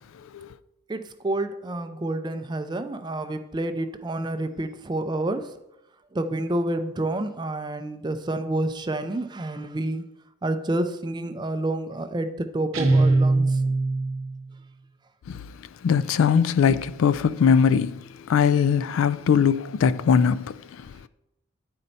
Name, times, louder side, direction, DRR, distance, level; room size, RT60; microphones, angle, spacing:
voice 1, 0.9-5.5 6.1-10.0 10.4-13.7, right 1 dB, 20° right, 0.4 m, -29 dB
Guitar, 12.7-14.4, right 2 dB, 65° right, 1.0 m, -21 dB
voice 2, 15.8-20.9, left 6 dB, 70° left, 0.3 m, -21 dB
9.9 x 4.3 x 4.0 m
head